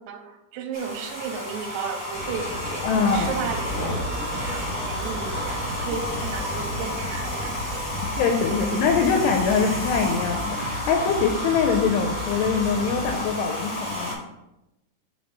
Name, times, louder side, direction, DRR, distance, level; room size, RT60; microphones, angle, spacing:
voice 1, 0.0-3.7 4.1-7.9, right 6 dB, 85° right, 2 dB, 2.6 m, -34 dB
Domestic sounds home sounds, 0.7-14.1, left 1 dB, 25° left, 1.1 m, -32 dB
sound 1, 2.1-8.1, left 1 dB, 45° left, 2.0 m, -36 dB
voice 2, 2.8-3.3 8.2-14.2, left 5 dB, 85° left, 4 dB, 2.6 m, -23 dB
sound 2, 3.1-13.3, right 1 dB, 45° right, 1.7 m, -35 dB
5.4 x 5.2 x 3.9 m, 0.92 s
omnidirectional pair, 4.9 m